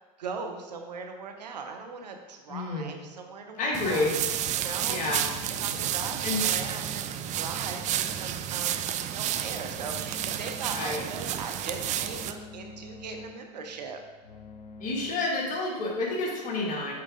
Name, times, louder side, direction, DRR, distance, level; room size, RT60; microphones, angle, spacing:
voice 1, 0.2-4.1 4.5-5.0 5.6-7.1 7.3-14.0, right 4 dB, 80° right, 4 dB, 0.9 m, -39 dB
voice 2, 2.5-2.9 3.6-4.1 4.9-5.2 6.2-6.5 10.8-11.0 14.8-16.9, left 2 dB, 40° left, -2 dB, 2.1 m, -29 dB
sound 1, 3.7-12.3, right 11 dB, 35° right, 0.4 m, -31 dB
sound 2, 5.0-15.1, left 4 dB, 80° left, 0.8 m, -48 dB
7.7 x 4.8 x 3.7 m, 1.4 s
hypercardioid pair, 85°, 21 cm